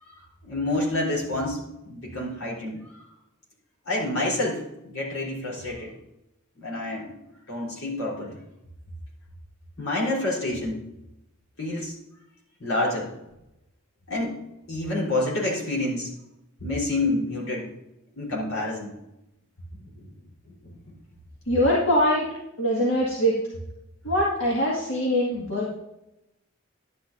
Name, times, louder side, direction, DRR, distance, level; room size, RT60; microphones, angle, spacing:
voice 1, 0.1-1.6 1.8-2.8 3.9-5.9 6.6-7.1 7.5-8.4 9.8-10.8 11.6-11.9 12.6-13.1 14.1-14.4 14.7-16.1 16.6-17.7 18.2-18.9 20.0-20.1, left 2 dB, 75° left, -3 dB, 4.0 m, -28 dB
voice 2, 21.5-22.3 22.6-23.3 24.0-25.8, equal, 60° left, -6 dB, 2.1 m, -23 dB
11.5 x 10.5 x 2.7 m, 0.89 s
head